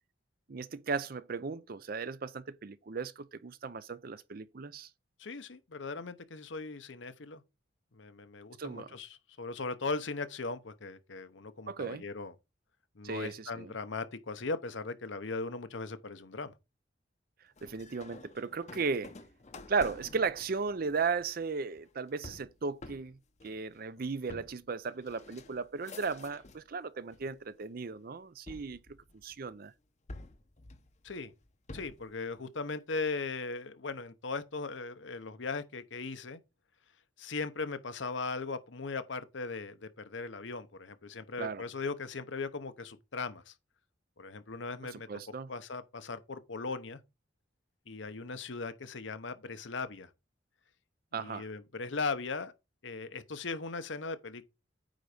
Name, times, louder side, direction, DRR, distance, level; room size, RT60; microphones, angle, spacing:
voice 1, 0.5-4.9 8.6-9.0 11.7-12.0 13.0-13.7 17.6-19.1 19.7-23.2 23.4-28.8 29.2-29.7 41.4-41.6 44.9-45.5 51.1-51.5, right 5 dB, 50° right, 0.5 m, -36 dB
voice 2, 5.2-7.4 7.9-12.3 13.0-16.5 31.0-31.3 31.7-36.4 37.2-43.5 44.2-45.1 45.5-47.0 47.9-50.1 51.1-52.5 52.8-54.5, left 4 dB, 70° left, 0.9 m, -38 dB
sound 1, 17.6-26.7 27.1-27.7 28.5-29.5 30.1-32.1, left 2 dB, 35° left, 0.8 m, -50 dB
9.1 x 4.0 x 5.0 m
head